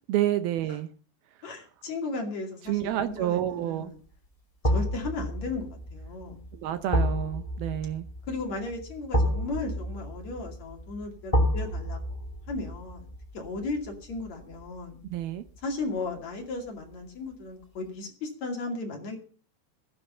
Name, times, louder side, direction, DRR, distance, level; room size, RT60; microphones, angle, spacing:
voice 1, 0.1-0.9 1.3-1.5 2.6-3.9 6.5-8.1 15.0-15.4, right 12 dB, 75° right, 11 dB, 2.5 m, -29 dB
voice 2, 1.4-4.0 4.6-6.4 8.3-12.2 12.5-13.1 13.3-15.0 15.6-19.2, left 3 dB, 45° left, 2 dB, 3.3 m, -35 dB
sound 1, 2.9-3.2 4.6-15.6 16.0-16.1, equal, 10° left, 2.2 m, -31 dB
16.5 x 10.0 x 5.5 m, 0.40 s
omnidirectional pair, 4.8 m